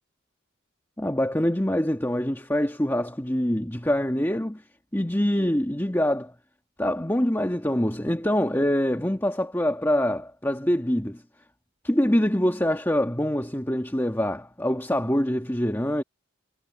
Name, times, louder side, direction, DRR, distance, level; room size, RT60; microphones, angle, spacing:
voice 1, 1.0-4.6 4.9-6.3 6.8-11.2 11.8-16.0, equal, 10° left, 1.7 m, -25 dB
head